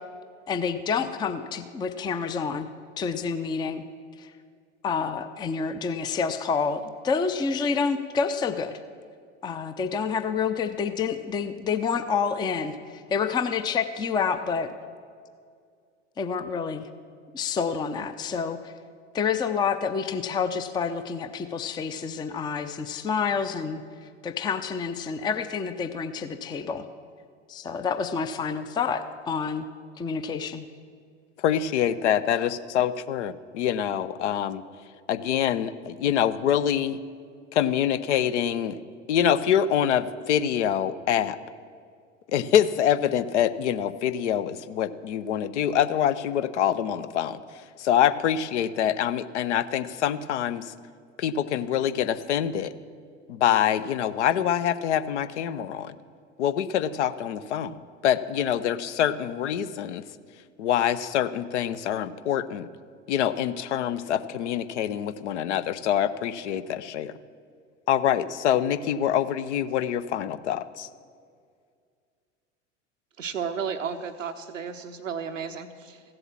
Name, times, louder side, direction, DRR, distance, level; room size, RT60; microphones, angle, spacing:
voice 1, 0.5-2.7 3.0-3.8 4.2-4.3 4.8-8.8 9.4-14.7 16.2-16.9 17.3-18.7 19.1-23.8 24.2-26.9 27.5-29.7 30.0-30.7, left 6 dB, 10° left, 10 dB, 0.4 m, -28 dB
voice 2, 31.4-34.6 35.1-37.0 37.5-38.8 39.1-41.4 42.3-47.4 47.8-50.7 51.2-52.7 53.3-55.9 56.4-60.0 60.6-62.7 63.1-67.1 67.9-70.9, left 10 dB, 65° left, 14 dB, 0.7 m, -25 dB
voice 3, 73.2-76.0, right 6 dB, 90° right, 9 dB, 0.6 m, -33 dB
15.0 x 7.9 x 7.3 m, 2.2 s
figure-of-eight pair, 80°, 37 cm